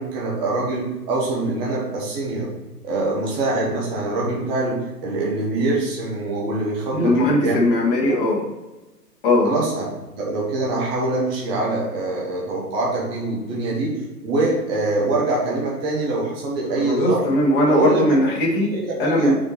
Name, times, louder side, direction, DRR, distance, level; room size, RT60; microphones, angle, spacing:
voice 1, 0.0-2.5 2.8-7.6 8.1-8.2 9.4-9.8 10.2-17.2 17.6-18.0 18.7-19.3, right 2 dB, 10° right, -4 dB, 0.7 m, -24 dB
voice 2, 6.9-8.4 9.2-9.5 16.8-18.7 19.0-19.3, left 1 dB, 35° left, -3 dB, 1.8 m, -19 dB
6.3 x 4.4 x 4.4 m, 1.1 s
figure-of-eight pair, 125°, 48 cm